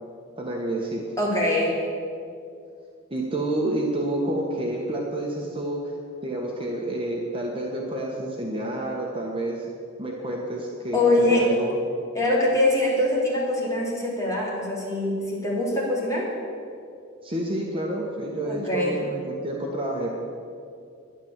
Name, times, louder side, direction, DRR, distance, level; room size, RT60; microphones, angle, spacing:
voice 1, 0.4-1.0 3.1-5.9 6.2-9.7 10.0-11.0 11.3-11.8 17.2-20.1, right 1 dB, 25° right, -2 dB, 1.3 m, -29 dB
voice 2, 1.2-1.7 10.9-11.4 12.1-16.3 18.4-19.0, left 1 dB, 15° left, -5 dB, 3.6 m, -23 dB
11.5 x 10.5 x 7.4 m, 2.4 s
head